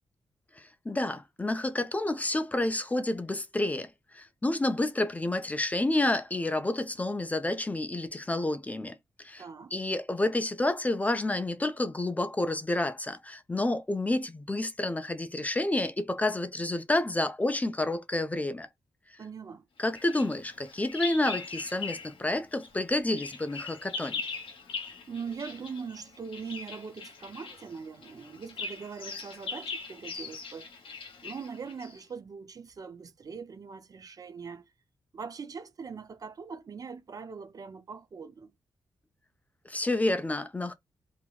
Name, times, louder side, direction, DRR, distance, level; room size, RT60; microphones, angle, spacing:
voice 1, 0.6-9.4 9.7-18.7 19.8-24.2 39.7-40.7, left 2 dB, 15° left, 0.4 m, -29 dB
voice 2, 9.4-9.7 19.2-19.6 25.1-30.7 31.2-34.6 35.1-38.5, right 5 dB, 45° right, 0.4 m, -41 dB
Bird vocalization bird call bird song, 19.9-22.2 22.5-32.0, left 4 dB, 75° left, 1.0 m, -40 dB
2.8 x 2.8 x 2.3 m
cardioid pair, 100°, 9 cm